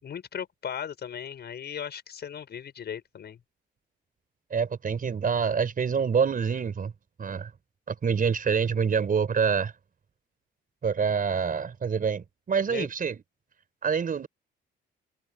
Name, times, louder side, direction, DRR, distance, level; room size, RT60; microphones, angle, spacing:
voice 1, 0.0-3.4 12.7-12.9, left 8 dB, 55° left, 6.0 m, -37 dB
voice 2, 4.5-6.9 7.2-7.5 7.9-9.7 10.8-13.2 13.8-14.3, right 6 dB, 45° right, 5.0 m, -26 dB
cardioid pair, 90°, 20 cm